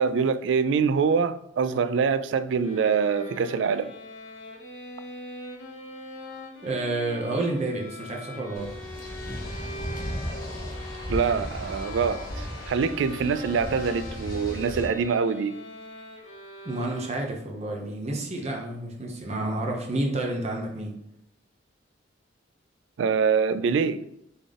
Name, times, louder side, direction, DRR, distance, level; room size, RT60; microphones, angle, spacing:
voice 1, 0.0-3.9 11.1-15.6 23.0-24.0, right 6 dB, 70° right, 0.3 m, -24 dB
sound 1, 2.6-17.6, left 1 dB, 90° left, 1.1 m, -42 dB
voice 2, 6.6-8.7 16.6-20.9, right 2 dB, 35° right, 0.7 m, -30 dB
sound 2, 8.5-14.9, equal, 50° left, 1.2 m, -35 dB
4.0 x 3.4 x 3.6 m
head